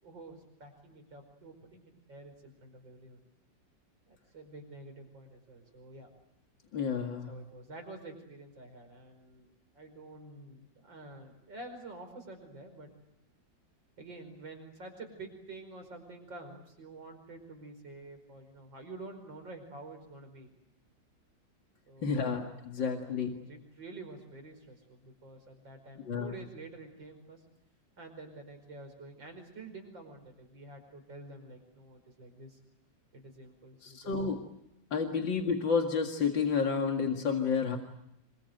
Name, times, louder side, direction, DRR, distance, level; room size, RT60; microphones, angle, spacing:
voice 1, 0.0-3.2 4.1-6.1 7.3-9.5 9.7-12.9 14.0-20.5 21.9-22.4 22.8-27.4 28.0-32.6 33.1-34.1 35.1-35.2, right 2 dB, 90° right, 5 dB, 5.8 m, -49 dB
voice 2, 6.7-7.3 22.0-23.4 26.0-26.3 33.8-34.4 34.9-37.8, left 5 dB, 90° left, 3 dB, 2.8 m, -30 dB
27.5 x 23.5 x 8.0 m, 0.80 s
omnidirectional pair, 2.0 m